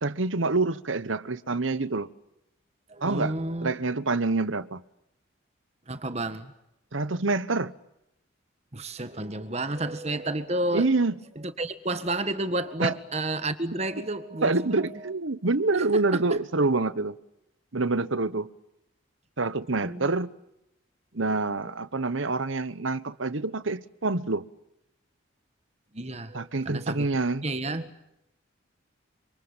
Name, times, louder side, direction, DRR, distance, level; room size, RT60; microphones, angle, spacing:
voice 1, 0.0-2.1 3.0-3.3 3.6-4.8 6.9-7.7 10.7-11.1 12.8-12.9 14.4-17.2 17.7-18.5 19.4-20.3 21.1-24.5 26.3-27.5, right 3 dB, 80° right, 1.2 m, -26 dB
voice 2, 2.9-3.7 5.9-6.5 8.7-10.9 11.4-15.1 15.7-15.8 19.8-20.1 21.1-21.4 25.9-27.1 27.4-28.0, right 2 dB, 35° right, 1.7 m, -31 dB
27.0 x 26.5 x 7.3 m
head